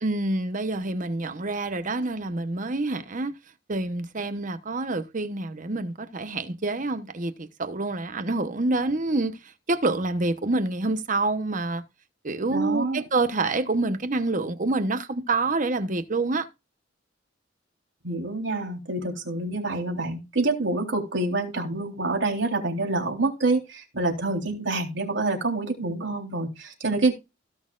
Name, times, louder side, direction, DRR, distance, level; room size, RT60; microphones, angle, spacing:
voice 1, 0.0-3.3 3.7-11.8 12.2-16.5, right 2 dB, 45° right, 1.0 m, -27 dB
voice 2, 12.5-13.0 18.0-27.1, right 2 dB, 75° right, 3.7 m, -27 dB
17.0 x 6.5 x 2.5 m
head